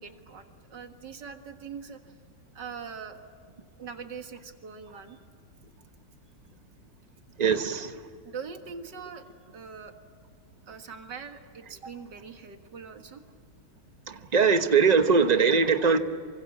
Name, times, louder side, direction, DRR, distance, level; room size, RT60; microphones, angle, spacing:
voice 1, 0.0-2.2 2.5-3.2 3.8-5.2 8.2-9.9 10.7-13.2, right 6 dB, 70° right, 6 dB, 2.4 m, -42 dB
voice 2, 7.4-8.0 14.1-16.0, right 5 dB, 25° right, 8 dB, 1.0 m, -21 dB
28.0 x 24.5 x 7.4 m, 2.2 s
omnidirectional pair, 2.0 m